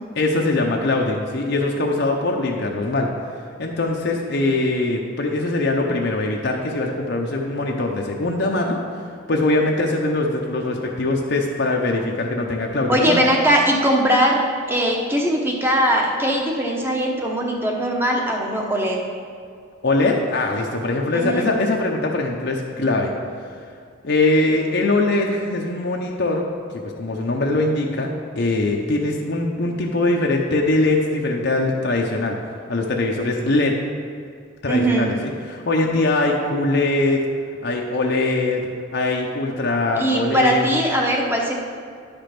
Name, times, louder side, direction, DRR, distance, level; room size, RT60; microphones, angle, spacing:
voice 1, 0.2-3.1 3.6-8.8 9.3-13.3 19.8-23.1 24.0-26.4 26.8-32.4 32.7-33.7 34.6-37.2 37.6-38.6 38.9-40.7, left 2 dB, 55° left, 0 dB, 0.7 m, -22 dB
voice 2, 12.9-19.0 21.1-21.5 34.7-35.1 40.0-41.5, right 1 dB, 10° right, 0 dB, 1.0 m, -20 dB
10.5 x 5.2 x 5.9 m, 2.2 s
head